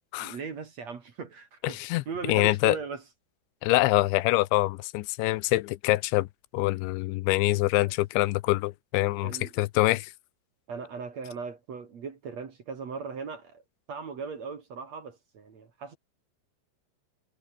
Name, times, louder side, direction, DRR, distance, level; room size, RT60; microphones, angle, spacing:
voice 1, 0.2-3.0 9.2-9.5 10.7-13.6 13.9-16.0, right 5 dB, 45° right, 3.0 m, -38 dB
voice 2, 1.6-2.8 3.6-6.3 6.5-10.1, left 19 dB, 85° left, 3.0 m, -25 dB
omnidirectional pair, 5.3 m